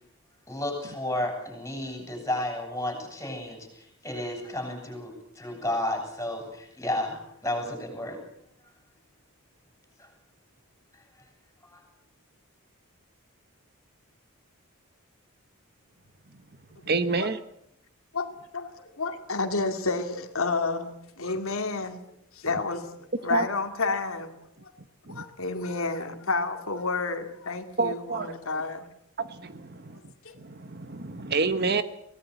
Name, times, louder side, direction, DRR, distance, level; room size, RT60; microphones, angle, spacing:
voice 1, 0.5-8.2 10.0-10.1 10.9-11.0 11.7-11.8, left 1 dB, 15° left, 4 dB, 7.7 m, -32 dB
voice 2, 16.9-17.4 23.3-23.5 25.1-25.2 27.8-28.3 29.2-29.8 30.4-31.8, right 4 dB, 45° right, 11 dB, 1.2 m, -28 dB
voice 3, 18.1-22.0 22.3-22.9 23.2-24.3 25.1-28.8 30.2-30.3, left 3 dB, 70° left, 5 dB, 2.5 m, -30 dB
24.0 x 18.5 x 8.3 m, 0.75 s
head